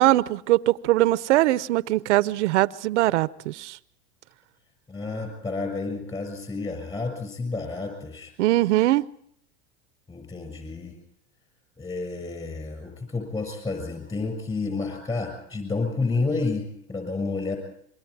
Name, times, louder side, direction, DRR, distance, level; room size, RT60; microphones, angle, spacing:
voice 1, 0.0-3.8 8.4-9.0, right 16 dB, 85° right, 17 dB, 0.8 m, -21 dB
voice 2, 4.9-8.3 10.1-11.0 11.8-17.6, left 3 dB, 15° left, 5 dB, 6.6 m, -30 dB
27.5 x 23.0 x 4.8 m, 0.68 s
supercardioid pair, 125°, 34 cm